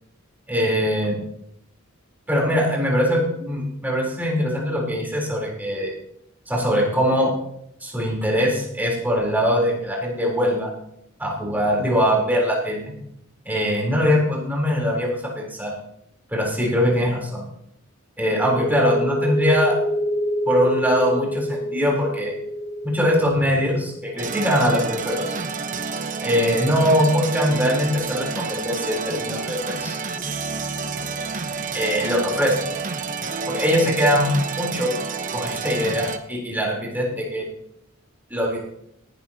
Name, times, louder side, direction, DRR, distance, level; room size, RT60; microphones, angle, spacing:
voice 1, 0.5-1.2 2.3-5.9 6.5-7.3 7.8-10.7 11.2-13.0 13.5-15.7 16.3-17.4 18.2-19.8 20.4-22.3 22.8-25.3 26.2-30.0 31.7-32.6 33.5-34.9 35.3-37.5 38.3-38.6, equal, 10° right, -2 dB, 3.8 m, -22 dB
sound 1, 18.4-25.7, equal, 55° left, 4.7 m, -27 dB
sound 2, 24.2-36.2, right 4 dB, 40° right, 1.0 m, -29 dB
18.5 x 12.0 x 2.9 m, 0.74 s
head